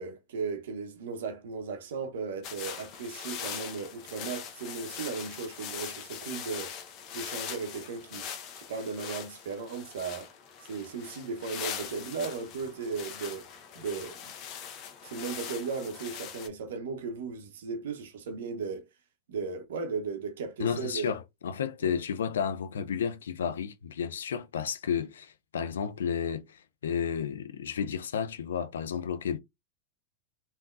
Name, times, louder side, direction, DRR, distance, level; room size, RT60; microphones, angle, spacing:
voice 1, 0.0-6.7 7.1-8.3 8.5-10.3 10.6-13.5 13.7-14.3 15.0-18.8 19.3-21.1 21.8-21.9, right 5 dB, 70° right, 0.7 m, -36 dB
sound 1, 2.4-16.5, left 8 dB, 45° left, 0.7 m, -41 dB
voice 2, 20.6-29.4, left 7 dB, 75° left, 0.3 m, -32 dB
3.5 x 2.7 x 2.4 m
hypercardioid pair, 90°, 0 cm